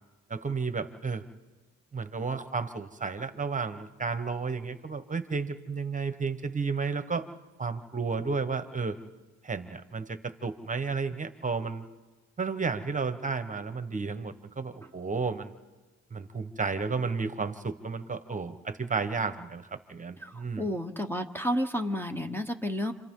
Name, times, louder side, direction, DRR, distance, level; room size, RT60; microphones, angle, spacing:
voice 1, 0.3-1.2 1.9-7.3 7.6-9.0 9.4-11.8 12.4-15.5 16.1-20.7, right 4 dB, 25° right, 10 dB, 1.2 m, -32 dB
voice 2, 20.2-22.9, equal, 5° left, 7 dB, 1.1 m, -31 dB
30.0 x 26.0 x 3.8 m, 1.3 s
cardioid pair, 90°, 30 cm